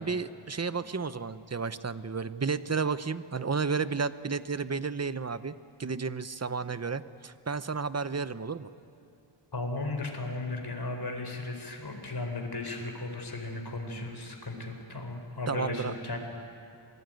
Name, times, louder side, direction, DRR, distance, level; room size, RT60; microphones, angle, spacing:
voice 1, 0.0-5.5 5.8-8.7 15.5-15.9, right 5 dB, 30° right, 13 dB, 0.8 m, -32 dB
voice 2, 9.5-16.2, left 2 dB, 50° left, 3 dB, 4.6 m, -36 dB
27.0 x 20.0 x 9.3 m, 2.6 s
wide cardioid pair, 90°, 49 cm